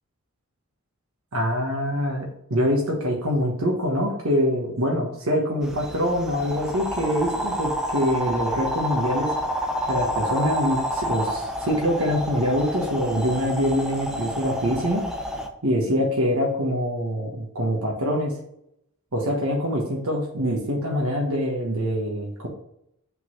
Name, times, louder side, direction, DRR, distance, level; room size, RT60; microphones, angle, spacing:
voice 1, 1.3-9.3 9.9-15.0 15.6-18.4 19.1-22.5, equal, 75° right, -1 dB, 1.3 m, -24 dB
sound 1, 5.6-15.5, equal, 5° right, 0.6 m, -29 dB
5.7 x 3.9 x 6.1 m, 0.76 s
head